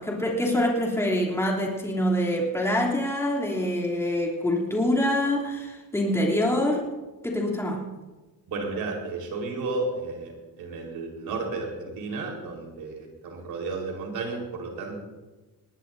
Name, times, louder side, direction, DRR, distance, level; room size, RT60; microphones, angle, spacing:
voice 1, 0.0-6.9 7.2-7.9, left 1 dB, 5° left, -3 dB, 3.2 m, -25 dB
voice 2, 8.5-15.0, right 3 dB, 85° right, 1 dB, 4.5 m, -33 dB
20.0 x 19.5 x 2.7 m, 1.2 s
cardioid pair, 150°, 35 cm